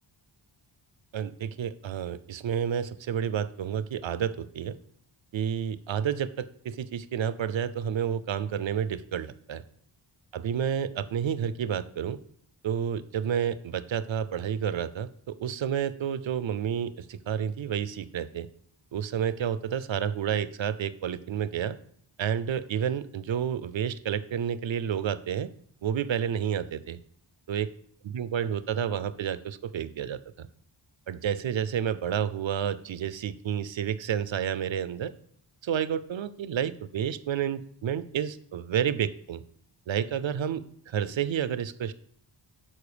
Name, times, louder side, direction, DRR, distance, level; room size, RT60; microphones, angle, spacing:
voice 1, 1.1-4.8 5.3-9.6 10.3-12.2 12.6-18.5 18.9-21.8 22.2-25.5 25.8-27.0 27.5-27.7 28.0-30.5 31.1-35.1 35.6-39.4 39.9-41.9, right 8 dB, 75° right, 14 dB, 0.7 m, -30 dB
12.0 x 4.5 x 5.0 m, 0.64 s
wide cardioid pair, 105°, 47 cm